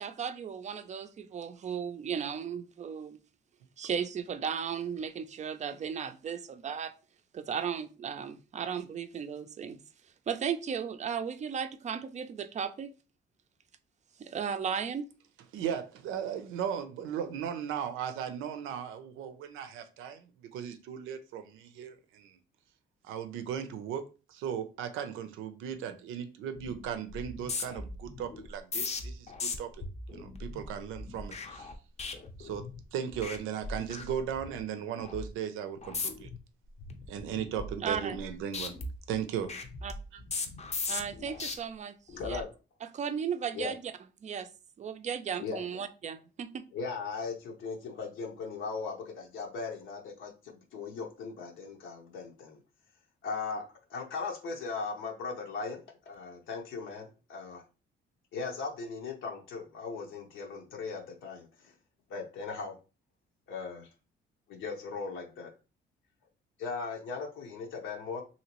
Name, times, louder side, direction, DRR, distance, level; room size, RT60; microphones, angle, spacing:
voice 1, 0.0-3.2 3.8-6.9 7.3-9.8 10.3-12.9 14.2-15.1 37.8-38.2 39.8-39.9 40.9-41.9 42.2-42.4 42.8-43.9 44.2-44.5 44.8-46.7, right 7 dB, 35° right, 0.4 m, -35 dB
voice 2, 15.5-22.4 23.1-29.7 30.1-31.7 32.4-32.7 32.9-36.3 37.1-38.7 39.1-39.5, right 8 dB, 90° right, 0.5 m, -37 dB
sound 1, 26.5-26.8 27.1-32.8 33.1-33.4 33.6-34.6 35.0-35.3 35.8-36.4 36.8-38.3 38.5-41.5 42.1-42.4, left 3 dB, 35° left, 0.6 m, -38 dB
voice 3, 42.2-42.5 43.5-43.7 45.4-45.8 46.7-52.6 53.2-53.6 53.9-57.6 58.3-61.7 62.1-62.8 63.5-63.9 64.5-65.5 66.6-68.2, left 4 dB, 80° left, 0.8 m, -38 dB
2.9 x 2.7 x 2.9 m
cardioid pair, 90°, 20 cm